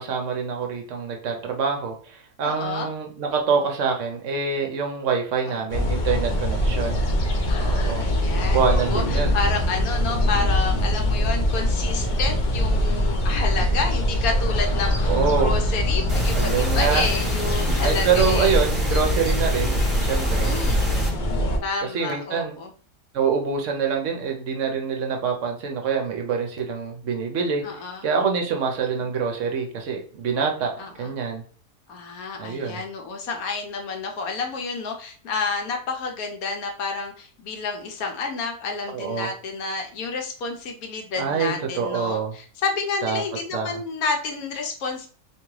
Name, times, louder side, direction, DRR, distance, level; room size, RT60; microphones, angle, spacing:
voice 1, 0.0-7.0 7.6-8.1 8.4-9.4 15.1-15.5 16.3-17.1 17.8-20.5 21.8-22.5 23.1-27.6 28.0-30.7 31.0-31.4 32.4-32.8 38.9-39.3 41.2-42.4 43.0-43.2 43.5-43.8, right 6 dB, 60° right, 3 dB, 0.9 m, -25 dB
voice 2, 2.4-2.9 5.4-5.7 7.5-18.6 20.4-20.9 21.6-22.7 27.6-28.0 28.8-29.1 30.8-31.1 31.9-45.1, left 4 dB, 75° left, 3 dB, 1.1 m, -30 dB
sound 1, 5.7-21.6, equal, 60° left, 0.5 m, -23 dB
sound 2, 16.1-21.1, equal, 20° right, 1.6 m, -30 dB
3.5 x 2.9 x 3.1 m, 0.42 s
omnidirectional pair, 1.6 m